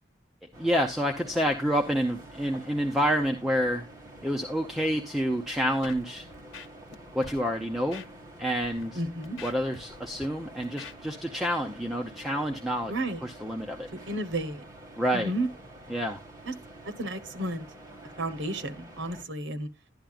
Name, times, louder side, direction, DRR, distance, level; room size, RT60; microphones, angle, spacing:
sound 1, 0.5-19.2, right 1 dB, 20° right, 1.8 m, -48 dB
voice 1, 0.6-3.9 4.2-6.2 7.1-8.0 8.4-9.0 9.4-12.9 13.2-13.9 15.0-15.3 15.9-16.2, equal, ahead, 0.6 m, -28 dB
Scratching (performance technique), 5.8-6.0 6.3-7.0 7.2-7.4 7.9-8.1 8.6-8.8 9.2-10.3 10.6-10.9, left 4 dB, 90° left, 1.0 m, -44 dB
voice 2, 8.9-9.4 12.9-13.2 14.1-14.6 15.1-15.5 16.5-16.6 16.8-17.7 18.2-19.7, right 1 dB, 75° right, 1.1 m, -32 dB
12.0 x 10.5 x 2.4 m
head